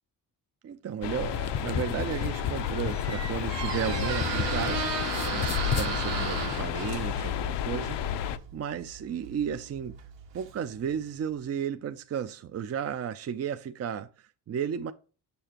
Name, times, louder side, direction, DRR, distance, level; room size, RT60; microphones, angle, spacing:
voice 1, 0.6-4.9 5.3-9.9 10.3-14.9, right 8 dB, 35° right, 0.5 m, -34 dB
sound 1, 1.0-8.4, left 9 dB, 75° left, 0.7 m, -31 dB
sound 2, 1.2-4.7 5.0-5.9, left 8 dB, 40° left, 0.5 m, -34 dB
Squeak, 2.3-11.0, right 7 dB, 90° right, 1.6 m, -36 dB
6.9 x 6.6 x 2.9 m
cardioid pair, 115°, 42 cm